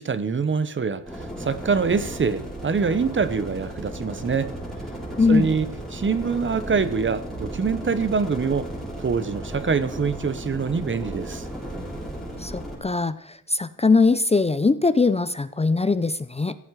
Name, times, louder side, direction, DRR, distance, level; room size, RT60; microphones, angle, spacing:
voice 1, 0.0-4.5 5.3-8.7 9.0-11.4, right 5 dB, 35° right, 1.0 m, -25 dB
sound 1, 1.1-12.8, right 1 dB, ahead, 7.1 m, -35 dB
voice 2, 5.2-5.5 12.4-13.2 13.5-16.5, left 4 dB, 20° left, 0.6 m, -21 dB
16.5 x 16.0 x 4.8 m
wide cardioid pair, 135°, 33 cm